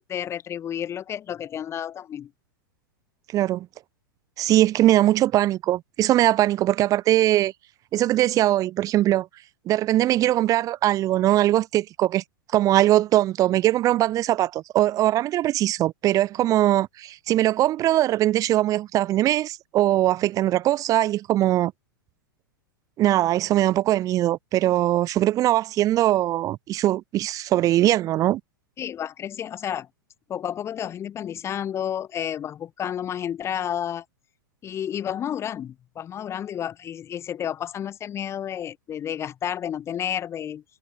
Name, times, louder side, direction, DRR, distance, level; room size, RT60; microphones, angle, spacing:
voice 1, 0.0-2.3 28.8-29.9 30.3-34.0 34.6-40.6, left 9 dB, 25° left, 2.2 m, -31 dB
voice 2, 3.3-3.7 4.4-7.5 7.9-9.3 9.7-12.2 12.5-21.7 23.0-28.4, right 14 dB, 30° right, 1.9 m, -21 dB
figure-of-eight pair, 95°, 11 cm